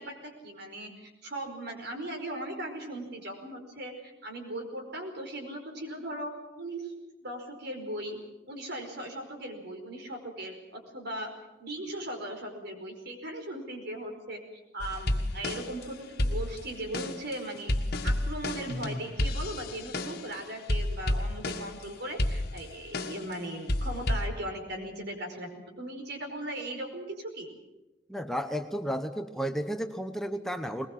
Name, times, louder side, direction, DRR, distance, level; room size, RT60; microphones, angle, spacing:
voice 1, 0.0-6.3 6.6-6.9 7.2-8.2 8.5-11.3 11.6-14.4 14.7-17.7 18.0-25.5 25.8-27.5, right 1 dB, 60° right, 4 dB, 4.9 m, -38 dB
sound 1, 14.8-15.8 16.2-20.3 20.7-21.8 22.2-23.3 23.7-24.3, left 1 dB, 55° left, 1.7 m, -31 dB
voice 2, 28.1-30.9, equal, ahead, 6 dB, 0.9 m, -33 dB
21.0 x 21.0 x 7.5 m, 1.1 s
head